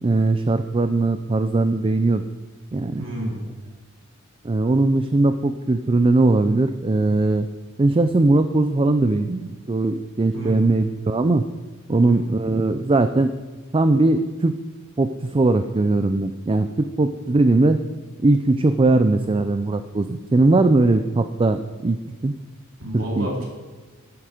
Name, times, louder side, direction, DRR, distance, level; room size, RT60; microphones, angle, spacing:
voice 1, 0.0-2.2 2.7-3.0 4.4-7.5 7.8-9.4 9.7-11.4 11.9-13.3 13.7-14.5 15.0-17.8 18.2-22.0 22.2-22.3 22.9-23.3, right 2 dB, 25° right, 9 dB, 0.4 m, -19 dB
voice 2, 3.0-3.4 10.3-10.6 11.9-12.2 22.8-23.4, right 1 dB, 70° right, -3 dB, 3.2 m, -29 dB
11.0 x 9.3 x 5.0 m, 1.3 s
head